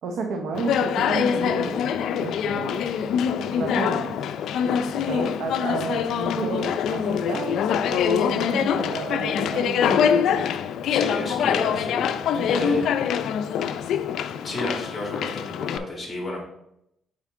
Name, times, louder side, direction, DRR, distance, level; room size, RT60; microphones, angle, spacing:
voice 1, 0.0-2.9 3.5-4.3 5.0-7.6 7.9-10.5 12.3-12.9, right 3 dB, 75° right, 3 dB, 0.8 m, -31 dB
Conversation, 0.5-15.8, left 8 dB, 75° left, 0.4 m, -24 dB
voice 2, 10.9-12.0 12.5-12.9 14.4-16.4, left 1 dB, 20° left, -2 dB, 2.6 m, -31 dB
5.7 x 5.1 x 3.6 m, 0.78 s
cardioid pair, 90°, 0 cm